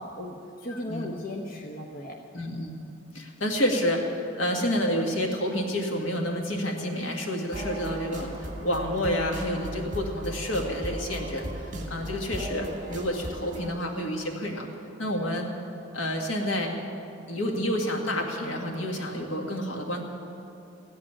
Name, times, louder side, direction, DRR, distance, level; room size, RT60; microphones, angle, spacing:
voice 1, 0.0-2.2, left 1 dB, 50° left, 1 dB, 1.0 m, -37 dB
voice 2, 0.7-1.1 2.3-2.8 3.1-11.5 11.9-14.7 15.0-15.5 15.9-16.8 17.3-20.0, equal, 80° left, 1 dB, 2.0 m, -29 dB
sound 1, 7.5-13.7, right 1 dB, 40° right, 1.9 m, -37 dB
15.0 x 7.8 x 10.0 m, 2.7 s
head